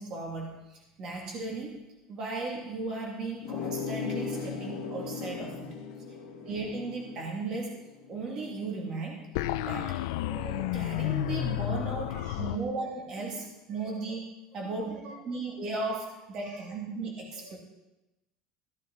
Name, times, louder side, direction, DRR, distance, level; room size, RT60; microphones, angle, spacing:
voice 1, 0.0-1.8 2.1-5.7 6.4-7.7 8.1-9.3 9.6-10.0 10.3-14.2 14.5-15.0 15.2-17.6, right 3 dB, 30° right, -1 dB, 2.4 m, -36 dB
sound 1, 3.4-8.7, left 6 dB, 70° left, 1.4 m, -38 dB
voice 2, 6.0-6.5 12.1-12.6 13.2-14.1 14.6-15.3 16.4-16.8 17.3-17.6, right 3 dB, 80° right, 1 dB, 2.7 m, -51 dB
sound 2, 9.4-12.6, left 14 dB, 90° left, 0.5 m, -31 dB
14.5 x 11.5 x 4.0 m, 0.98 s
cardioid pair, 180°, 2 cm